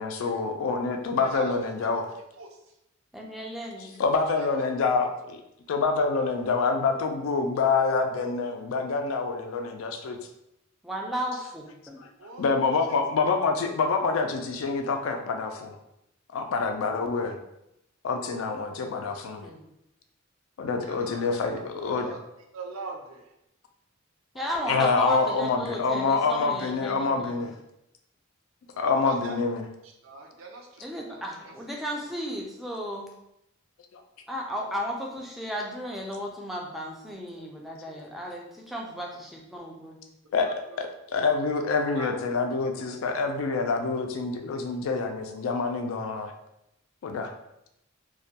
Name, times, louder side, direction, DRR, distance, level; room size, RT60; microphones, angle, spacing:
voice 1, 0.0-2.0 4.0-5.4 5.7-10.2 12.0-12.1 12.4-15.8 16.3-17.4 18.0-19.5 20.6-22.1 24.7-27.5 28.8-29.6 33.9-34.0 40.3-40.5 40.8-46.3 47.0-47.3, left 4 dB, 80° left, 5 dB, 0.4 m, -26 dB
voice 2, 1.2-2.0 2.4-2.6 4.1-4.9 11.3-11.5 12.2-13.0 20.8-22.2 22.5-23.3 25.1-25.2 29.0-29.4 29.8-30.8 31.1-31.5 32.0-32.1 40.4-40.8 41.9-42.1, right 3 dB, 85° right, 1 dB, 0.5 m, -42 dB
voice 3, 3.1-4.0 10.8-12.0 19.4-19.6 24.3-27.4 30.8-33.1 34.3-40.0, equal, ahead, -2 dB, 0.3 m, -34 dB
2.2 x 2.1 x 2.7 m, 0.83 s
head